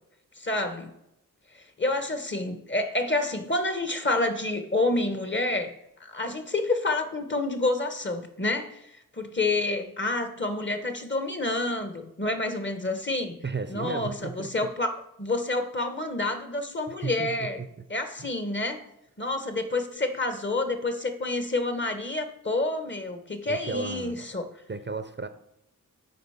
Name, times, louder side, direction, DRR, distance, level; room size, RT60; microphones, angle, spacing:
voice 1, 0.4-0.9 1.5-5.7 6.0-13.4 13.7-17.6 17.9-18.9 19.2-24.5, left 2 dB, 35° left, 7 dB, 1.1 m, -28 dB
voice 2, 13.4-14.7 17.0-17.7 18.2-18.3 23.5-24.2 24.7-25.3, right 4 dB, 30° right, 10 dB, 0.6 m, -34 dB
6.6 x 4.1 x 5.7 m, 0.83 s
cardioid pair, 50°, 35 cm